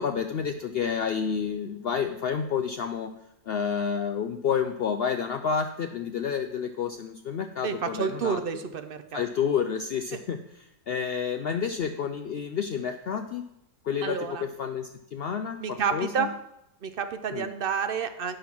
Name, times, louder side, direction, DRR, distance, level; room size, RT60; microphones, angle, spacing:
voice 1, 0.0-3.1 3.5-8.4 9.1-10.4 10.9-13.4 13.8-16.3 17.3-17.5, left 7 dB, 70° left, 7 dB, 0.5 m, -29 dB
voice 2, 7.6-9.2 14.0-14.4 15.6-16.3 16.8-18.4, right 6 dB, 65° right, 9 dB, 0.5 m, -29 dB
8.9 x 5.7 x 5.9 m, 0.83 s
omnidirectional pair, 1.5 m